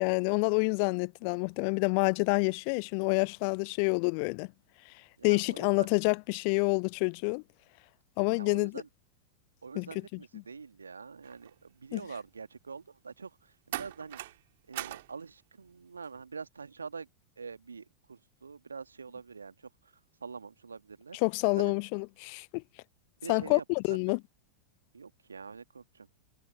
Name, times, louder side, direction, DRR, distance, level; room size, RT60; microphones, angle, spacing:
voice 1, 0.0-4.5 5.2-7.4 8.2-8.8 9.7-10.4 11.9-12.0 21.1-22.6 23.3-24.2, left 40 dB or more, 45° left, 0.6 m, -28 dB
voice 2, 5.2-5.9 8.3-8.9 9.6-14.2 14.7-17.1 17.4-19.5 20.2-21.2 21.6-21.8 23.2-23.6 24.1-24.2 24.9-26.1, right 5 dB, 75° right, 1.8 m, -45 dB
sound 1, 11.2-11.6 13.7-14.4 14.7-15.1 16.0-16.2, right 16 dB, 55° right, 3.2 m, -40 dB
figure-of-eight pair, 90°, 0 cm